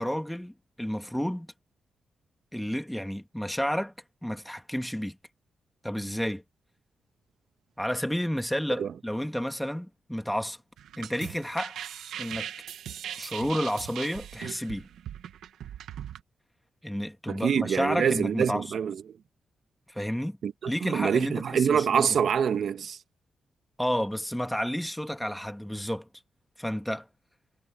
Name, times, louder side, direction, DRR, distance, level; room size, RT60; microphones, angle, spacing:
voice 1, 0.0-1.5 2.5-3.9 4.2-5.2 5.8-6.4 7.8-10.6 11.0-11.8 12.2-12.5 13.2-14.9 16.8-18.6 19.9-20.4 20.7-22.2 23.8-26.1 26.6-27.1, equal, 5° left, 2.2 m, -31 dB
sound 1, 10.8-16.2, right 10 dB, 90° right, 1.6 m, -39 dB
voice 2, 17.3-19.0 20.4-23.0, right 7 dB, 70° right, 1.8 m, -26 dB
cardioid pair, 70°, 0 cm